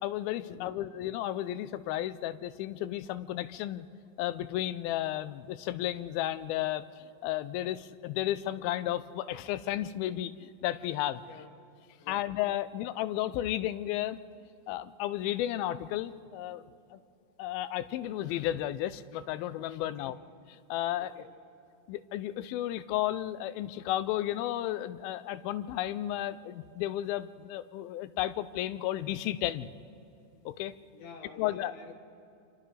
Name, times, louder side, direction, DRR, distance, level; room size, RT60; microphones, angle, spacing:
voice 1, 0.0-3.9 4.2-11.2 12.1-14.2 14.7-16.6 16.9-17.0 17.4-20.2 20.7-21.1 21.9-29.7 30.5-30.7 31.4-31.7, left 13 dB, 85° left, 14 dB, 2.5 m, -33 dB
voice 2, 12.0-12.3 19.8-20.2 21.0-21.4 30.9-31.9, left 5 dB, 70° left, 3 dB, 2.4 m, -49 dB
29.5 x 27.0 x 3.3 m, 2.7 s
omnidirectional pair, 4.2 m